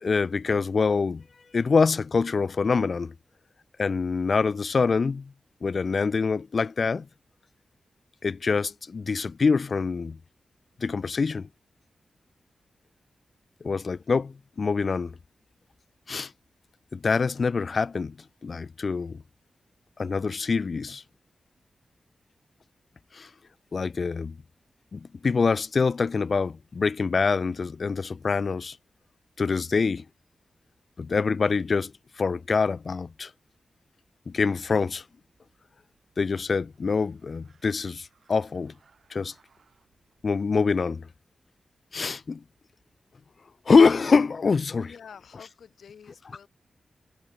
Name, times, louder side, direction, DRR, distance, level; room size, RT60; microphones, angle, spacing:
voice 1, 0.0-1.2 1.5-3.1 3.8-5.3 5.6-7.1 8.2-10.2 10.8-11.5 13.6-15.2 16.1-16.3 16.9-18.2 18.4-19.2 20.0-21.0 23.1-23.3 23.7-24.4 24.9-28.8 29.4-30.1 31.0-33.3 34.3-35.0 36.2-38.7 39.1-39.3 40.2-41.1 41.9-42.4 43.7-44.9, left 4 dB, 45° left, 0.4 m, -25 dB
sound 1, 35.1-41.1, right 5 dB, 55° right, 4.3 m, -66 dB
voice 2, 44.9-46.5, left 7 dB, 90° left, 1.7 m, -48 dB
wide cardioid pair, 170°, 0 cm